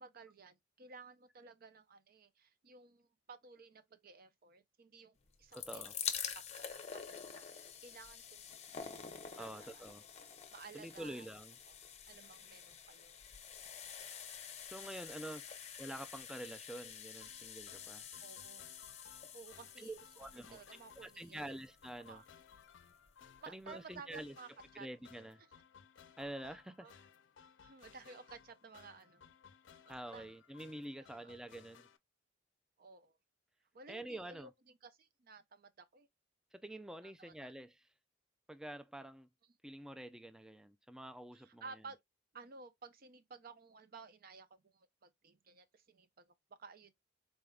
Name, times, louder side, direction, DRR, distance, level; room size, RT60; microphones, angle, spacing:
voice 1, 0.0-5.8 6.1-6.6 7.1-9.1 9.4-10.1 10.5-11.3 11.7-11.8 12.1-13.2 13.8-14.0 18.2-19.1 19.3-19.9 20.4-21.6 22.1-22.3 23.4-24.9 26.5-26.9 27.6-29.2 29.8-30.3 31.1-31.4 32.8-33.2 33.7-36.1 37.0-37.6 41.3-42.0 42.3-46.9, right 4 dB, 50° right, 0.6 m, -55 dB
sound 1, 5.3-22.3 23.1-23.2 23.4-23.5, left 8 dB, 35° left, 0.6 m, -48 dB
voice 2, 5.5-5.9 9.4-10.0 10.7-11.6 14.6-15.5 15.8-18.1 19.8-20.6 21.0-22.2 23.5-24.3 24.7-25.4 26.2-26.9 29.9-31.9 33.9-34.5 36.5-37.9 38.5-39.3 39.6-41.6, right 1 dB, 5° right, 0.3 m, -47 dB
sound 2, 17.2-32.0, left 7 dB, 75° left, 0.5 m, -61 dB
4.1 x 3.4 x 2.3 m
head